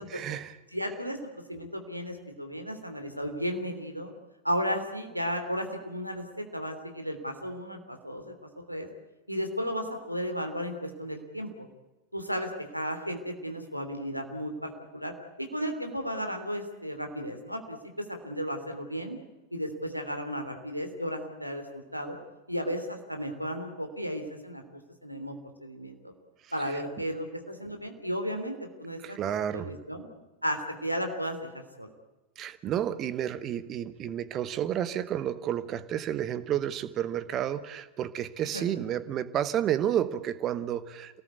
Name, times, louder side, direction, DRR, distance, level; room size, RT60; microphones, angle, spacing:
voice 1, 0.0-0.6 26.7-26.8 29.0-29.7 32.4-41.2, right 10 dB, 30° right, 14 dB, 1.4 m, -31 dB
voice 2, 0.7-4.1 4.4-8.3 8.7-8.9 9.3-11.7 12.1-15.1 15.4-19.2 19.5-22.2 22.5-24.6 25.0-25.3 25.6-26.1 26.5-29.0 29.5-30.0 30.4-31.9 38.5-38.7, equal, 90° right, 5 dB, 3.3 m, -34 dB
27.5 x 18.5 x 8.4 m, 1.1 s
figure-of-eight pair, 90°, 0 cm